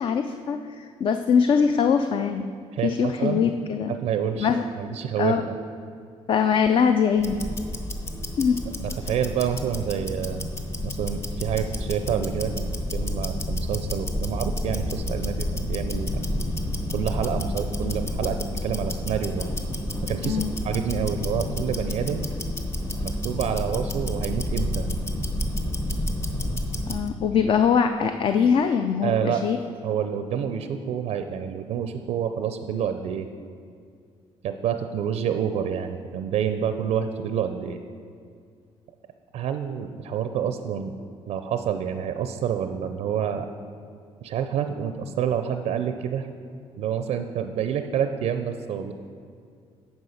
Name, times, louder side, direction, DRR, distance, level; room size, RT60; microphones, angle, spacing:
voice 1, 0.0-2.5 2.8-4.0 4.4-4.7 5.2-5.4 6.3-7.4 8.4-8.6 9.0-9.1 20.2-20.5 26.9-29.6, left 6 dB, 50° left, 7 dB, 0.4 m, -22 dB
voice 2, 2.7-3.4 3.9-5.3 8.8-10.5 10.8-16.1 16.9-19.5 20.1-22.3 23.0-24.9 29.0-29.4 29.8-33.3 34.4-37.8 39.3-40.9 41.3-43.5 44.2-46.3 46.8-48.9, right 8 dB, 70° right, 8 dB, 0.4 m, -28 dB
Tick-tock, 7.2-27.1, left 1 dB, 25° left, 0.8 m, -30 dB
9.5 x 4.5 x 5.6 m, 2.3 s
cardioid pair, 100°, 11 cm